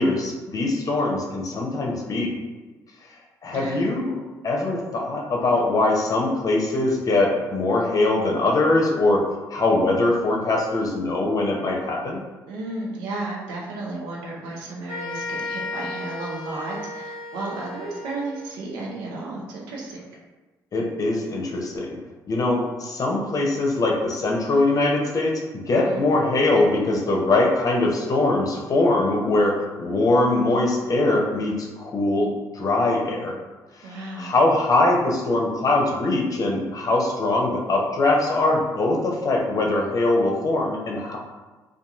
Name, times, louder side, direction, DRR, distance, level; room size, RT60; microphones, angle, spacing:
voice 1, 0.0-2.4 3.4-4.2 4.4-9.2 9.5-12.2 20.7-22.0 22.3-33.3 33.8-33.9 34.2-41.2, left 2 dB, 50° left, -1 dB, 0.7 m, -22 dB
voice 2, 3.5-3.9 12.5-20.0 25.7-26.0 33.8-34.3, right 2 dB, 90° right, -2 dB, 0.6 m, -33 dB
sound 1, 14.9-18.5, left 2 dB, 35° right, 1.1 m, -34 dB
2.9 x 2.4 x 2.4 m, 1.2 s
supercardioid pair, 65°, 8 cm